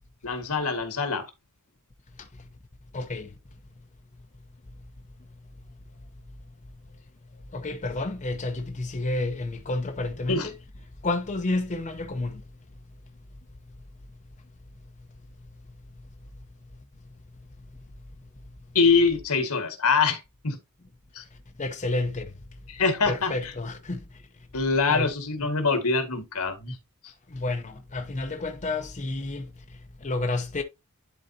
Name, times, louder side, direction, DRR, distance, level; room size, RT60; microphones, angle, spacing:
voice 1, 0.2-1.2 10.3-10.5 18.8-20.6 21.2-21.3 22.7-23.3 24.5-26.8, left 4 dB, 80° left, 1.8 m, -24 dB
voice 2, 2.9-3.3 7.5-10.6 11.0-12.4 21.6-22.3 23.1-24.0 24.9-25.1 27.3-29.5 30.0-30.6, left 2 dB, 35° left, 0.8 m, -30 dB
11.0 x 4.0 x 2.7 m
head